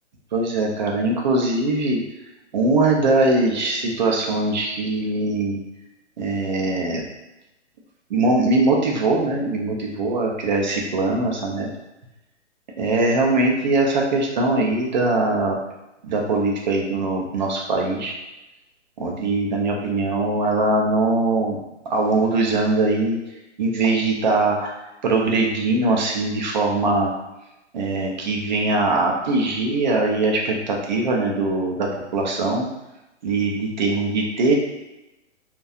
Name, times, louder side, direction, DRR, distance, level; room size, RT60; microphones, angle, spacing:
voice 1, 0.3-2.0 2.5-5.6 6.2-7.0 8.1-11.7 12.8-15.6 16.0-18.1 19.0-21.6 21.9-23.2 23.6-24.7 25.0-27.1 27.7-32.7 33.2-34.6, right 2 dB, 40° right, -1 dB, 0.4 m, -21 dB
2.6 x 2.2 x 2.4 m, 0.94 s
hypercardioid pair, 150°, 36 cm